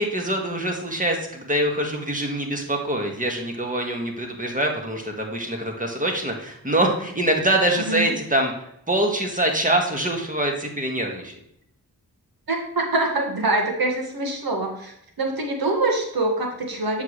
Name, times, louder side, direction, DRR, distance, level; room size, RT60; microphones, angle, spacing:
voice 1, 0.0-11.3, right 1 dB, 20° right, 2 dB, 1.8 m, -24 dB
voice 2, 12.5-17.0, right 2 dB, 60° right, 2 dB, 1.9 m, -24 dB
7.2 x 5.8 x 3.3 m, 0.74 s
cardioid pair, 50°, 40 cm